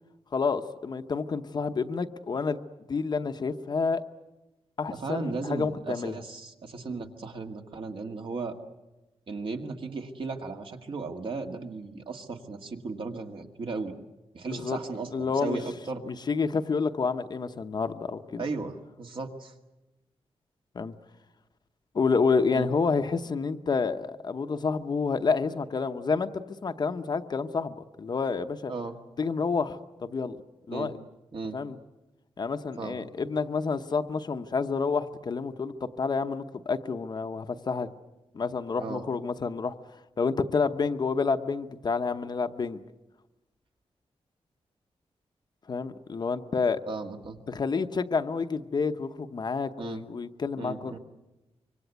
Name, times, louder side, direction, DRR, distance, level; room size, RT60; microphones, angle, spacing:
voice 1, 0.3-2.6 2.9-4.0 4.8-6.2 14.5-14.8 15.1-15.6 16.0-18.4 20.7-21.0 21.9-28.7 29.2-30.4 30.7-30.9 31.5-31.8 32.4-37.9 38.3-42.8 45.7-46.8 47.5-51.0, left 4 dB, 40° left, 8 dB, 0.9 m, -29 dB
voice 2, 4.9-8.5 9.3-14.0 14.3-16.0 18.4-19.5 22.5-22.7 28.7-29.0 30.7-30.9 31.3-31.6 32.8-33.2 38.8-39.0 46.9-47.4 49.8-50.0 50.6-51.0, right 4 dB, 55° right, 4 dB, 1.8 m, -36 dB
25.5 x 24.5 x 8.2 m, 1.0 s
wide cardioid pair, 180°, 11 cm